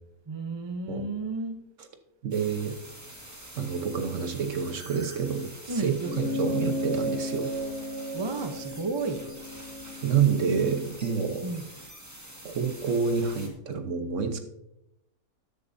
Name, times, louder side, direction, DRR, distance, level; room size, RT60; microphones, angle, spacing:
voice 1, 0.3-1.6 5.7-6.6 8.1-9.3 11.4-11.6, right 3 dB, 30° right, 7 dB, 0.5 m, -32 dB
voice 2, 2.2-2.8 3.6-7.5 10.0-11.5 12.4-14.4, right 6 dB, 55° right, 7 dB, 1.2 m, -28 dB
sound 1, 2.3-13.5, right 1 dB, 10° right, 1.6 m, -46 dB
sound 2, 6.0-10.8, left 1 dB, 60° left, 4.0 m, -34 dB
13.0 x 10.5 x 2.7 m, 0.85 s
omnidirectional pair, 1.7 m